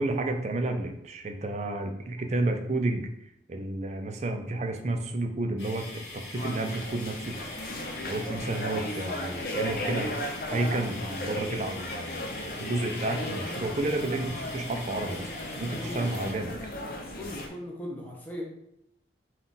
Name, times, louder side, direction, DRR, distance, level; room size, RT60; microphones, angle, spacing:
voice 1, 0.0-3.0 3.5-7.3 8.0-10.1 10.5-15.3 15.6-16.5, right 2 dB, 40° right, 5 dB, 0.4 m, -31 dB
sound 1, 5.6-16.3, left 2 dB, 75° left, 1.2 m, -43 dB
sound 2, 6.3-17.5, left 1 dB, 50° left, 0.6 m, -36 dB
voice 2, 15.7-16.2 17.1-18.4, equal, 10° left, -2 dB, 0.7 m, -38 dB
3.7 x 2.4 x 3.9 m, 0.81 s
head